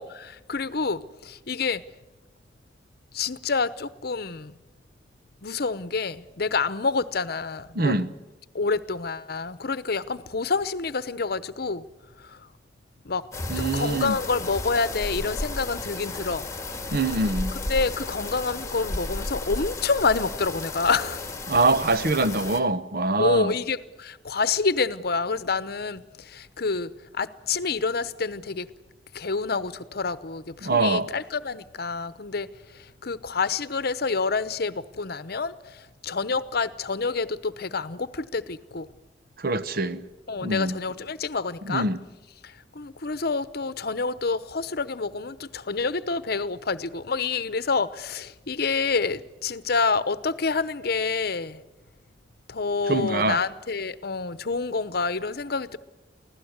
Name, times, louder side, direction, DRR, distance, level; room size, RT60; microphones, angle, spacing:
voice 1, 0.0-1.8 3.1-4.6 5.4-8.0 8.5-11.8 12.2-12.5 13.0-13.3 13.6-16.5 17.7-21.4 23.2-28.7 29.1-32.5 32.7-38.9 40.3-41.8 42.4-51.6 52.5-55.8, left 4 dB, 60° left, 0.9 m, -28 dB
voice 2, 7.7-8.1 13.5-14.1 16.9-17.5 21.5-23.5 30.6-31.1 39.4-40.0 40.4-40.8 41.7-42.0 52.9-53.4, right 3 dB, 55° right, 1.1 m, -24 dB
sound 1, 13.3-22.6, left 2 dB, 15° left, 1.8 m, -33 dB
24.0 x 16.5 x 8.1 m
head